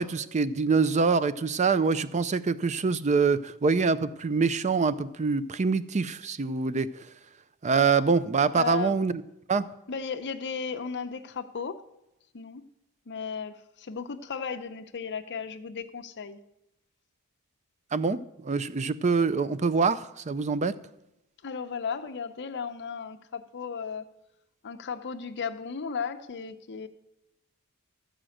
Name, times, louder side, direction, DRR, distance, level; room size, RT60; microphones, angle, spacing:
voice 1, 0.0-6.9 7.6-9.1 9.5-9.7 17.9-20.8, right 4 dB, 30° right, 0.4 m, -25 dB
voice 2, 8.6-9.0 9.9-11.8 12.3-12.6 13.1-16.4 21.4-24.1 24.6-26.9, left 6 dB, 50° left, 0.7 m, -35 dB
13.5 x 5.0 x 7.7 m
head